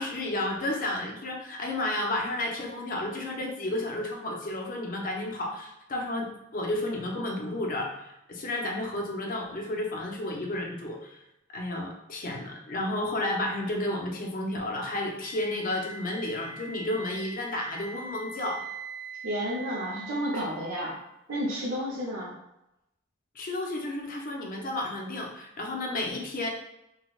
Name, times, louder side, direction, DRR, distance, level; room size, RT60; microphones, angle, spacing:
voice 1, 0.0-11.2 11.5-18.6 23.4-26.5, left 1 dB, 45° left, 0 dB, 0.5 m, -32 dB
Wind instrument woodwind instrument, 15.1-21.1, right 3 dB, 65° right, 0.3 m, -43 dB
voice 2, 19.2-20.9 21.3-22.3, equal, 90° right, -5 dB, 0.7 m, -31 dB
3.8 x 2.1 x 2.3 m, 0.88 s
head